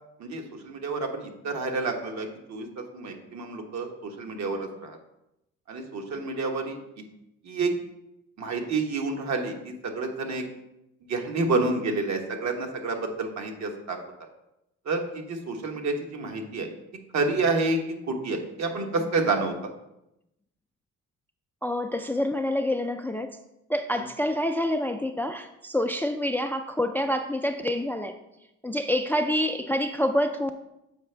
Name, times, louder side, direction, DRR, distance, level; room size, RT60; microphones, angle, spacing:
voice 1, 0.2-5.0 5.7-6.7 7.4-7.7 8.4-10.5 11.1-14.0 14.8-16.7 17.1-19.7 24.0-24.1, right 3 dB, 65° right, 3 dB, 1.2 m, -29 dB
voice 2, 21.6-23.3 23.7-28.2 28.6-30.5, left 1 dB, 5° left, 7 dB, 0.3 m, -27 dB
7.2 x 5.0 x 3.3 m, 0.86 s
cardioid pair, 90°, 30 cm